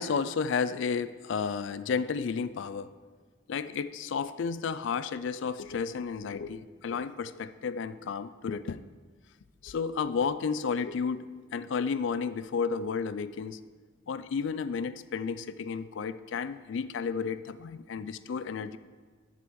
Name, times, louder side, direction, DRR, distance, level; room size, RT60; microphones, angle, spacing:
voice 1, 0.0-2.9 3.5-8.8 9.6-13.6 14.1-18.8, left 5 dB, 60° left, 15 dB, 0.3 m, -32 dB
9.3 x 6.9 x 4.7 m, 1.5 s
head